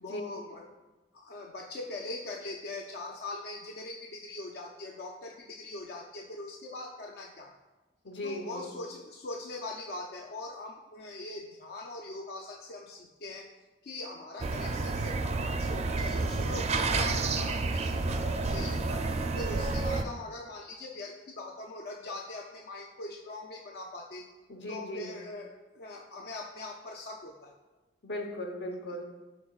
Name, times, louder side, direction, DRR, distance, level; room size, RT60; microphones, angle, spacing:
voice 1, 0.0-0.6 1.1-7.5 8.2-13.5 13.8-24.3 24.7-27.5, left 2 dB, 60° left, 1 dB, 0.4 m, -41 dB
voice 2, 8.0-8.7 24.5-25.1 28.0-29.0, left 1 dB, 85° left, 3 dB, 0.9 m, -38 dB
sound 1, 14.4-20.0, right 3 dB, 40° right, 0.4 m, -30 dB
11.5 x 4.4 x 2.4 m, 1.2 s
head